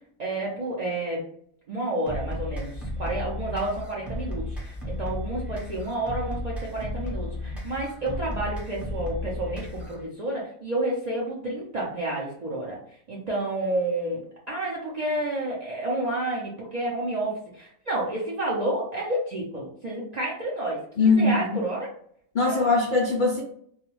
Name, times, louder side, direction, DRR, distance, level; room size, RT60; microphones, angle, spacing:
voice 1, 0.2-1.2 1.7-12.8 13.1-14.2 14.5-21.9 22.4-22.6, right 1 dB, 60° right, -4 dB, 0.4 m, -30 dB
sound 1, 2.1-10.1, left 1 dB, ahead, 0.5 m, -34 dB
voice 2, 21.0-21.6 22.3-23.4, left 3 dB, 85° left, -2 dB, 0.4 m, -21 dB
2.3 x 2.1 x 3.0 m, 0.64 s
omnidirectional pair, 1.5 m